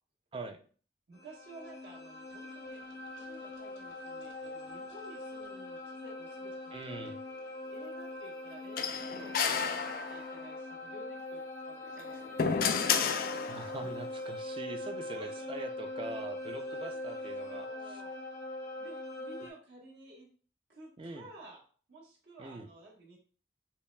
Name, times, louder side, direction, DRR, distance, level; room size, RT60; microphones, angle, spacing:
voice 1, 0.3-0.6 6.7-7.2 13.5-18.0 21.0-21.3 22.4-22.7, right 2 dB, 30° right, 7 dB, 0.4 m, -43 dB
sound 1, 1.1-19.5, left 1 dB, 90° left, 0.9 m, -42 dB
voice 2, 1.1-2.8 3.1-7.1 7.7-12.9 13.8-13.9 15.1-15.6 16.6-18.1 18.8-20.3 20.7-21.6 21.9-23.2, right 1 dB, 75° right, -3 dB, 1.3 m, -53 dB
sound 2, 8.8-10.5 11.9-13.9, left 6 dB, 55° left, 0.3 m, -31 dB
5.6 x 2.3 x 2.2 m, 0.42 s
head